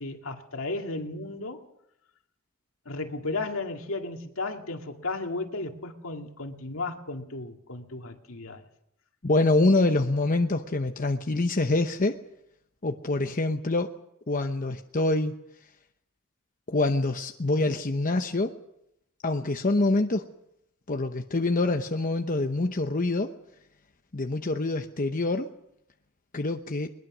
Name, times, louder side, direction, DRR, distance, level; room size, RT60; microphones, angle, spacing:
voice 1, 0.0-1.7 2.9-8.6, left 2 dB, 70° left, 3 dB, 2.3 m, -34 dB
voice 2, 9.2-12.2 12.8-13.9 14.3-15.3 16.7-18.5 19.2-20.2 20.9-23.3 24.1-25.5 26.3-26.9, left 2 dB, 40° left, 5 dB, 0.9 m, -25 dB
21.5 x 21.0 x 6.2 m, 0.80 s
head